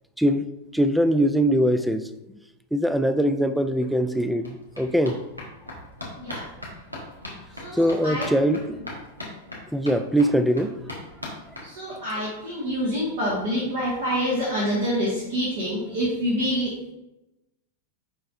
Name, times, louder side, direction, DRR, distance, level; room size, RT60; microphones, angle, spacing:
voice 1, 0.2-2.1 2.7-5.2 7.7-8.8 9.7-10.8, equal, ahead, 10 dB, 0.4 m, -22 dB
sound 1, 3.5-3.6 3.8-12.3 12.6-12.7 12.9-13.0 13.3-13.4, left 1 dB, 90° right, 1.5 m, -40 dB
voice 2, 7.6-8.3 11.6-16.8, equal, 55° right, -6 dB, 1.8 m, -26 dB
10.0 x 4.2 x 2.6 m, 0.94 s
figure-of-eight pair, 90°, 0 cm